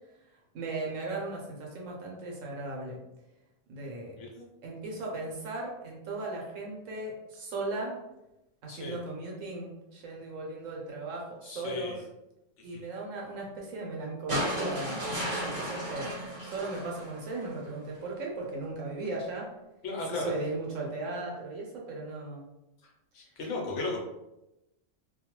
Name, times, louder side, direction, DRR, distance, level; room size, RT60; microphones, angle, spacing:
voice 1, 0.5-3.0 3.7-4.2 4.6-8.0 8.6-12.0 12.6-16.2 16.4-19.5 20.1-22.4, right 2 dB, 85° right, -2 dB, 1.1 m, -37 dB
voice 2, 8.7-9.0 11.4-12.0 12.7-12.9 19.8-20.3 23.1-24.0, left 3 dB, 70° left, 0 dB, 1.0 m, -35 dB
sound 1, 14.3-17.6 18.9-19.0, right 1 dB, 45° right, 1.1 m, -34 dB
2.6 x 2.2 x 2.9 m, 0.93 s
omnidirectional pair, 1.3 m